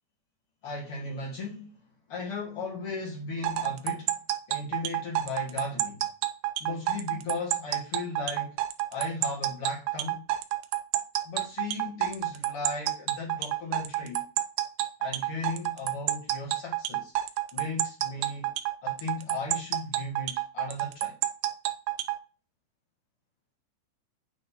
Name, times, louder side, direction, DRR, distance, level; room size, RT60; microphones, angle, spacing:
voice 1, 0.6-1.8 2.1-4.2 4.5-6.0 6.6-8.6 8.9-10.2 11.2-14.2 15.0-17.1 17.5-18.5 18.8-21.2, left 3 dB, 80° left, 1.3 m, -36 dB
sound 1, 3.4-22.2, right 15 dB, 85° right, 2.6 m, -29 dB
9.1 x 3.8 x 2.8 m
omnidirectional pair, 5.5 m